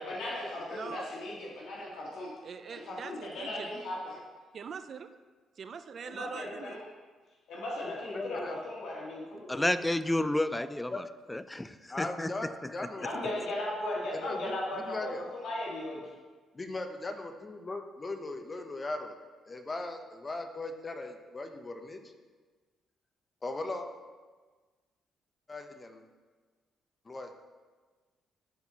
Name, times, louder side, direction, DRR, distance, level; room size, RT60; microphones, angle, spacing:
voice 1, 0.1-2.3 2.7-4.2 6.0-6.8 7.5-9.7 13.0-15.1 15.4-16.0, left 1 dB, 75° left, -5 dB, 1.7 m, -37 dB
voice 2, 0.7-1.1 2.4-3.7 4.5-5.1 5.6-6.8, right 6 dB, 50° right, 11 dB, 0.4 m, -42 dB
voice 3, 7.9-8.6 10.9-11.0 11.9-13.3 14.2-14.5 14.9-15.2 16.5-19.2 19.5-22.1 23.4-23.9 25.5-26.0 27.0-27.3, left 2 dB, 30° left, 5 dB, 0.8 m, -38 dB
voice 4, 9.5-12.3, left 1 dB, 10° left, 13 dB, 0.3 m, -31 dB
12.0 x 4.4 x 2.9 m, 1.4 s
cardioid pair, 90°, 0 cm